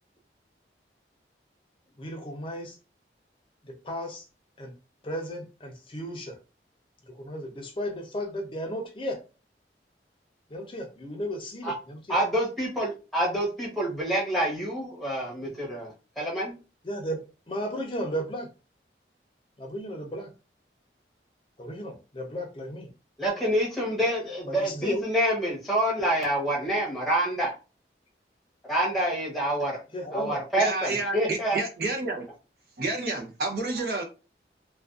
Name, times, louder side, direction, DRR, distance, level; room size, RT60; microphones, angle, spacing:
voice 1, 2.0-2.8 3.7-4.2 4.6-4.7 5.0-6.4 7.1-9.2 10.5-12.2 16.8-18.5 19.6-20.3 21.6-22.9 24.5-25.1 29.9-30.4, equal, 30° left, 0.5 m, -34 dB
voice 2, 12.1-16.5 23.2-27.5 28.7-29.8 30.1-31.6, right 1 dB, ahead, 0.8 m, -27 dB
voice 3, 30.6-32.3 32.8-34.0, right 2 dB, 60° right, 0.7 m, -29 dB
2.4 x 2.2 x 2.4 m
head